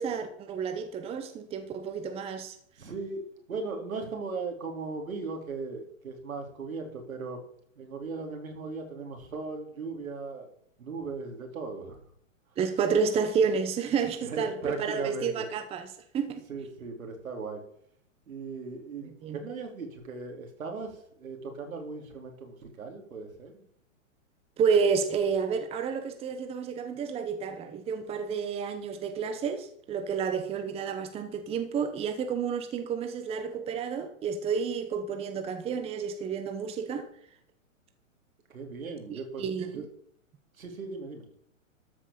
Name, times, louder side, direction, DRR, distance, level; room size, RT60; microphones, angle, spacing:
voice 1, 0.0-2.5 12.6-16.5 19.2-19.4 24.6-37.1 39.1-39.9, right 6 dB, 15° right, 1.0 m, -30 dB
voice 2, 2.8-7.4 7.8-10.5 10.8-12.0 14.2-15.5 16.5-17.6 18.3-23.6 38.5-39.5 39.7-39.8 40.6-41.2, right 4 dB, 80° right, 4.2 m, -38 dB
13.0 x 6.3 x 7.1 m
hypercardioid pair, 140°, 41 cm